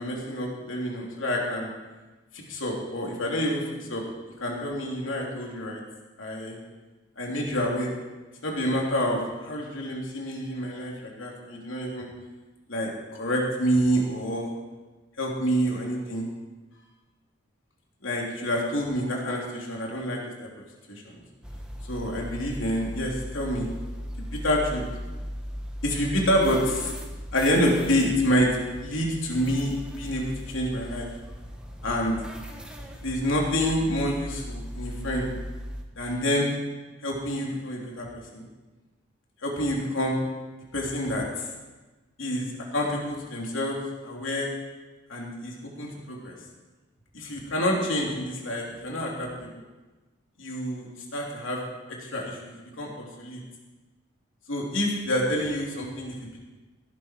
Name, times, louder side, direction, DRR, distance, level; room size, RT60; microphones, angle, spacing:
voice 1, 0.0-1.7 2.3-3.6 3.9-4.0 4.4-5.8 6.2-6.6 7.2-7.9 8.4-12.1 12.7-14.5 15.2-16.3 18.0-20.2 20.9-21.1 21.9-23.7 24.2-24.8 25.8-26.9 27.3-28.5 28.8-31.1 31.8-32.1 33.0-35.3 36.0-36.5 37.0-38.1 38.3-38.4 39.4-40.2 40.7-41.5 42.2-43.8 44.0-44.5 45.1-46.3 47.1-49.5 50.4-51.6 52.0-53.4 54.5-56.4, equal, 75° left, -1 dB, 3.2 m, -28 dB
sound 1, 21.4-35.8, equal, 5° right, 1.2 m, -38 dB
17.0 x 11.0 x 4.6 m, 1.2 s
head